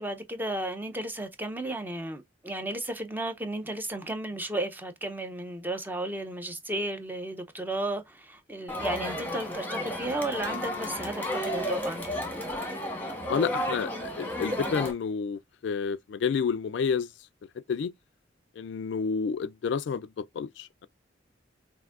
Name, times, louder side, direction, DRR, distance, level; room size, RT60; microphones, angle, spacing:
voice 1, 0.0-12.1, right 1 dB, 10° right, 0.6 m, -34 dB
Crowd, 8.7-14.9, left 1 dB, 10° left, 1.1 m, -32 dB
voice 2, 13.3-17.1 17.7-17.9 18.6-20.9, left 6 dB, 70° left, 0.3 m, -30 dB
5.8 x 2.6 x 2.4 m
head